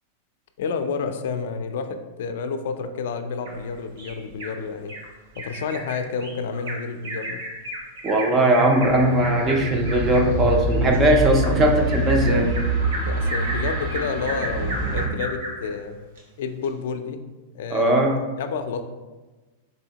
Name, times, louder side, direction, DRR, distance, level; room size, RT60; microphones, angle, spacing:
voice 1, 0.6-4.9 5.4-7.4 13.1-16.0 16.4-17.2 17.5-18.8, left 5 dB, 65° left, 7 dB, 0.3 m, -30 dB
Bird vocalization bird call bird song, 3.4-4.5 4.9-5.1 5.3-15.7 16.2-16.3 16.6-16.7, right 1 dB, 90° right, 0.9 m, -34 dB
voice 2, 8.0-12.5 17.7-18.2, right 1 dB, 15° right, 3 dB, 0.4 m, -19 dB
sound 1, 8.8-15.1, right 2 dB, 45° right, 0.7 m, -25 dB
4.2 x 2.8 x 2.8 m, 1.2 s
supercardioid pair, 170°, 0 cm